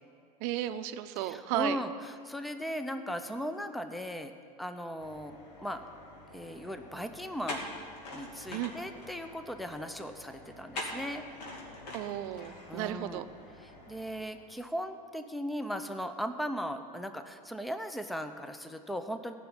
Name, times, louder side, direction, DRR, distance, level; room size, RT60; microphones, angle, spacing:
voice 1, 0.4-1.8 8.5-8.7 11.9-13.2, right 14 dB, 65° right, 11 dB, 0.7 m, -34 dB
voice 2, 1.2-4.3 4.6-5.8 6.3-7.6 8.1-11.2 12.7-13.2 13.6-19.3, equal, ahead, 8 dB, 0.8 m, -38 dB
sound 1, 5.0-14.3, left 1 dB, 80° left, 2.6 m, -45 dB
15.5 x 6.0 x 9.6 m, 2.2 s
hypercardioid pair, 95°, 21 cm